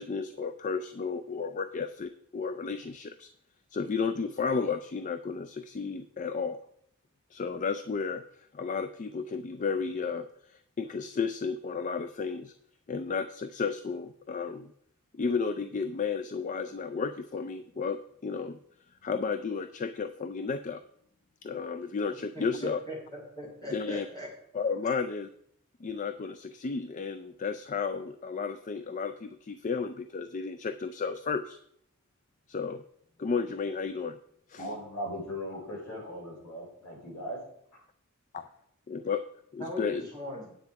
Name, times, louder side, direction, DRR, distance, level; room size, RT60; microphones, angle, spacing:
voice 1, 0.0-3.3 3.7-6.6 7.3-12.5 12.9-14.7 15.1-18.6 19.0-20.8 21.4-22.8 23.7-24.1 24.5-25.3 25.8-31.6 32.5-32.8 33.2-34.2 34.5-34.6 38.3-38.5 38.9-39.2 39.5-40.0, left 5 dB, 35° left, 10 dB, 0.4 m, -33 dB
voice 2, 22.3-24.3 39.6-40.5, equal, 20° left, -3 dB, 3.1 m, -39 dB
voice 3, 34.5-37.4, equal, 75° left, -3 dB, 4.8 m, -38 dB
9.7 x 7.9 x 4.6 m, 0.69 s
head